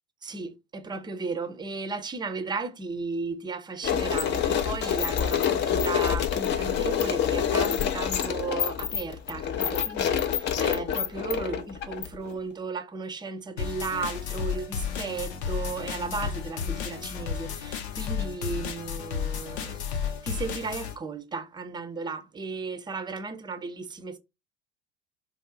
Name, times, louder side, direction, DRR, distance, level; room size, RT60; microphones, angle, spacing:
voice 1, 0.2-19.8 20.0-24.2, right 4 dB, 15° right, 0.6 m, -35 dB
sound 1, 3.8-12.3, left 9 dB, 35° left, 0.5 m, -27 dB
sound 2, 13.6-20.9, left 7 dB, 70° left, 0.7 m, -32 dB
4.3 x 2.0 x 3.8 m
figure-of-eight pair, 75°, 34 cm